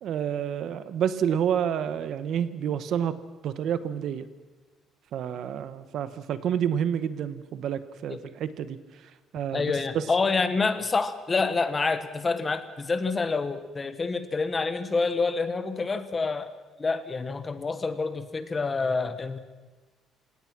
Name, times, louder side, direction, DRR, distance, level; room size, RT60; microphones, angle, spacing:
voice 1, 0.0-3.2 3.4-4.3 5.1-10.0, right 9 dB, 55° right, 13 dB, 1.0 m, -29 dB
voice 2, 9.5-16.5 16.8-19.4, left 4 dB, 20° left, 11 dB, 1.2 m, -27 dB
28.0 x 18.0 x 6.1 m, 1.3 s
cardioid pair, 170°, 0 cm